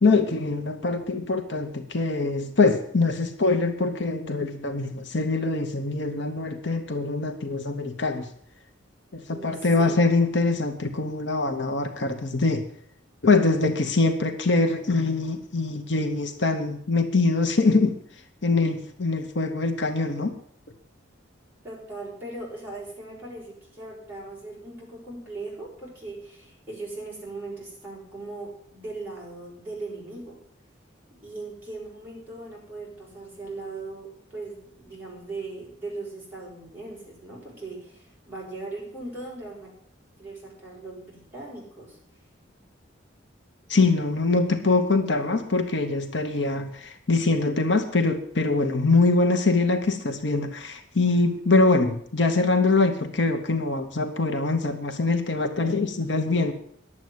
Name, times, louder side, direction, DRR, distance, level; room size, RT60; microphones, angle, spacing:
voice 1, 0.0-8.3 9.1-12.6 13.2-18.0 18.4-20.3 43.7-56.5, left 3 dB, 65° left, 6 dB, 1.1 m, -23 dB
voice 2, 9.3-10.1 21.6-30.4 31.2-39.7 40.2-42.0, right 2 dB, 10° right, -6 dB, 6.1 m, -39 dB
11.0 x 7.9 x 9.4 m, 0.63 s
head